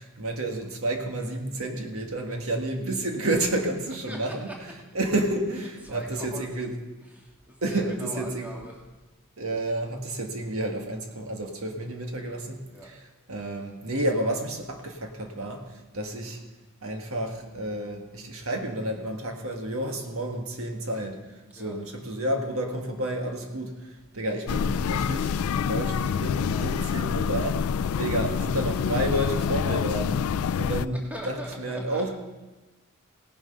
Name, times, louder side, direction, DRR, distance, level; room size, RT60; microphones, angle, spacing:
voice 1, 0.0-4.5 4.9-6.7 7.6-8.5 9.4-13.0 13.3-15.6 15.9-16.4 16.8-21.2 21.5-25.3 25.7-27.7 28.0-30.2 30.6-32.1, right 1 dB, 70° right, 2 dB, 1.7 m, -30 dB
voice 2, 4.1-4.5 5.8-6.7 7.1-8.8 12.7-12.9 21.6-21.8 26.5-26.7 31.1-32.1, right 1 dB, 5° right, -1 dB, 1.8 m, -41 dB
sound 1, 24.5-30.9, left 7 dB, 75° left, 0.3 m, -27 dB
18.0 x 7.1 x 5.5 m, 1.2 s
head